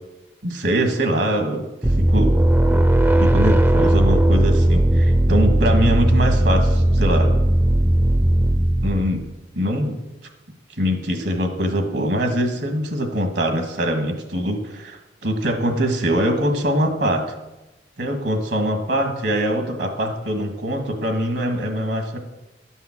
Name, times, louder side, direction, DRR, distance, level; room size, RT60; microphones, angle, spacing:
voice 1, 0.4-1.7 2.0-2.3 3.2-7.4 8.8-9.3 9.5-10.0 10.8-17.3 18.0-22.2, equal, 75° right, 5 dB, 1.8 m, -23 dB
sound 1, 1.8-9.3, right 1 dB, 10° right, 0.4 m, -17 dB
10.5 x 5.5 x 7.4 m, 1.0 s
head